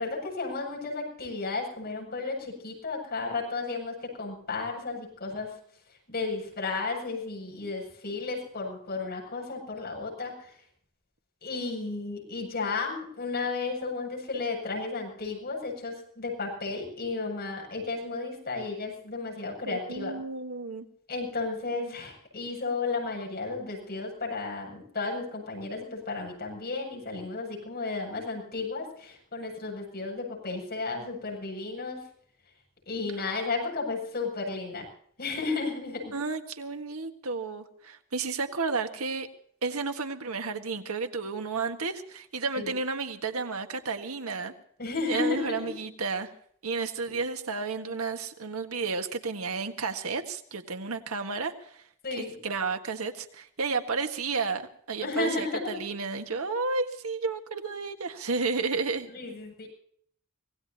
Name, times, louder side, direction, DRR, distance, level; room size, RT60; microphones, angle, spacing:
voice 1, 0.0-5.6 6.1-10.5 11.4-20.2 21.1-32.0 32.9-34.9 35.2-36.1 42.6-42.7 44.8-45.7 47.1-47.2 52.0-52.4 55.0-55.8 59.1-59.7, left 3 dB, 45° left, -1 dB, 7.6 m, -33 dB
voice 2, 19.7-20.9 33.2-33.4 36.1-39.3 39.6-44.5 45.1-46.3 46.6-51.9 52.2-59.1, right 4 dB, 80° right, 6 dB, 1.6 m, -32 dB
25.5 x 18.5 x 2.9 m, 0.63 s
head